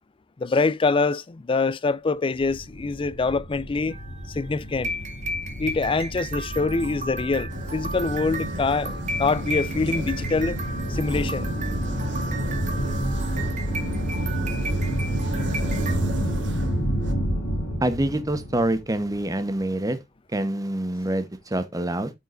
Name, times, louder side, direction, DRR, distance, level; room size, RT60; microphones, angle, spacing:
voice 1, 0.4-4.0 4.3-4.9 5.6-10.6 10.9-11.5, left 3 dB, 25° left, 0.4 m, -25 dB
sound 1, 2.5-19.4, equal, 80° left, 4.5 m, -29 dB
sound 2, 3.9-15.9, right 1 dB, 40° right, 1.9 m, -35 dB
sound 3, 7.5-17.1, right 2 dB, 70° right, 1.4 m, -36 dB
voice 2, 17.8-20.0 20.3-22.1, right 1 dB, 20° right, 1.0 m, -26 dB
13.5 x 4.6 x 2.5 m
head